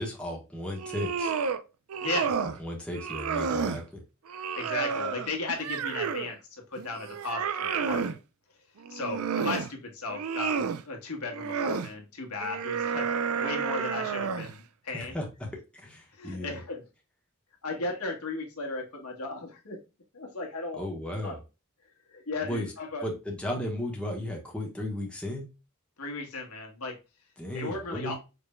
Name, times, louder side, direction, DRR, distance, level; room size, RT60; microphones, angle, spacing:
voice 1, 0.0-1.3 2.6-4.0 14.9-15.5 15.7-16.6 20.7-21.4 22.4-22.7 23.0-25.5 27.4-28.1, left 1 dB, 5° left, -1 dB, 1.1 m, -35 dB
sound 1, 0.7-1.6 1.9-2.6 2.9-3.8 4.3-6.3 6.8-8.2 8.8-9.7 10.1-10.8 11.3-11.9 12.4-14.6, right 6 dB, 75° right, 0.4 m, -31 dB
voice 2, 2.0-2.3 4.5-8.2 8.9-13.1 13.3-15.2 16.1-16.8 17.6-19.8 20.1-20.8 21.2-21.4 22.1-23.0 26.0-26.9 27.5-28.1, left 3 dB, 85° left, 1 dB, 1.4 m, -36 dB
5.1 x 3.1 x 2.2 m, 0.29 s
head